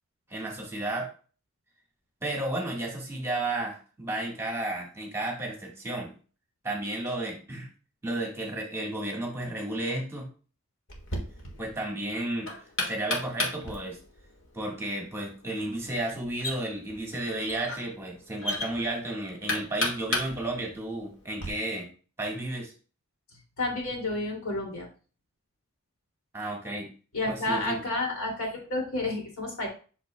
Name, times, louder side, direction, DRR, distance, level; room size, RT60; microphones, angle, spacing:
voice 1, 0.3-1.1 2.2-6.1 6.6-7.7 8.0-10.3 11.6-12.5 12.8-14.0 14.5-21.9 22.2-22.7 26.3-26.9 27.3-27.8, right 1 dB, 10° right, -1 dB, 1.5 m, -32 dB
Knock, 10.9-21.5, left 1 dB, 60° left, 1.6 m, -35 dB
voice 2, 23.6-24.9 27.1-29.7, left 2 dB, 75° left, -1 dB, 2.5 m, -30 dB
8.0 x 5.7 x 2.2 m, 0.38 s
head